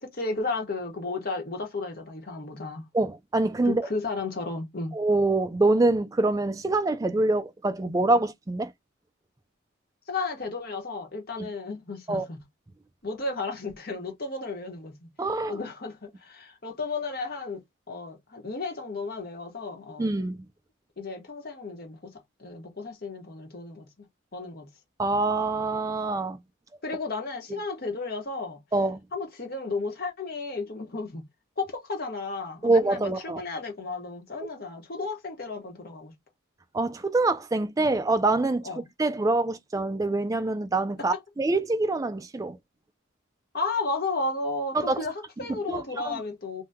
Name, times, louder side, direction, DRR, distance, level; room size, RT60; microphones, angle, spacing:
voice 1, 0.0-2.8 3.7-4.9 10.1-12.4 13.0-15.1 15.5-20.1 21.0-23.9 24.3-24.7 26.8-28.6 29.1-31.2 31.6-36.1 38.6-38.9 41.0-41.1 43.5-46.6, left 3 dB, 50° left, 1.1 m, -33 dB
voice 2, 2.9-3.9 4.9-8.7 12.1-12.3 15.2-15.6 20.0-20.4 25.0-26.4 28.7-29.0 32.6-33.4 36.7-38.7 39.0-42.6 44.7-45.0 45.7-46.2, right 2 dB, 15° right, 0.3 m, -25 dB
2.7 x 2.2 x 3.5 m
head